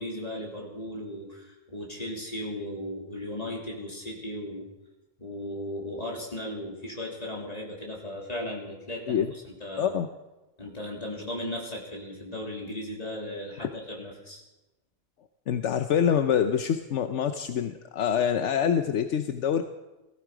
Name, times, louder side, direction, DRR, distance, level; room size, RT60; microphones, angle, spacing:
voice 1, 0.0-4.7 5.2-9.9 10.6-14.4, left 1 dB, 30° left, -2 dB, 3.3 m, -36 dB
voice 2, 9.8-10.1 13.6-13.7 15.5-19.6, left 8 dB, 75° left, 8 dB, 1.0 m, -25 dB
18.0 x 15.0 x 5.0 m, 1.0 s
omnidirectional pair, 1.2 m